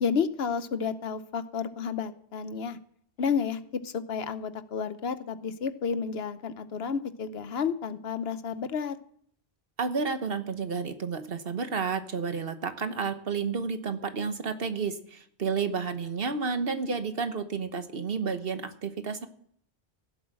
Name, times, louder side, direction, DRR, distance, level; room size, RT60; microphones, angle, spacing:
voice 1, 0.0-2.8 3.2-9.0, left 6 dB, 70° left, 12 dB, 1.0 m, -31 dB
voice 2, 9.8-19.3, right 5 dB, 65° right, 9 dB, 1.3 m, -31 dB
16.5 x 7.9 x 7.7 m, 0.65 s
omnidirectional pair, 1.1 m